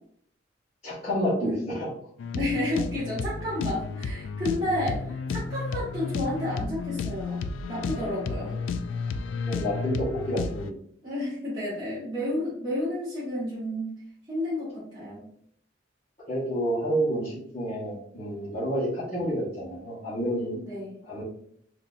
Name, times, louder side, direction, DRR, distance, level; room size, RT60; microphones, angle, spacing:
voice 1, 0.8-1.9 9.4-10.7 16.3-20.6 21.0-21.2, equal, 35° left, -11 dB, 1.2 m, -29 dB
sound 1, 2.2-10.7, left 4 dB, 85° left, 0.3 m, -32 dB
voice 2, 2.3-7.4 7.7-8.6 11.0-13.9 14.3-15.2 20.7-20.9, left 1 dB, 25° right, -11 dB, 1.2 m, -31 dB
3.9 x 2.8 x 2.5 m, 0.66 s
head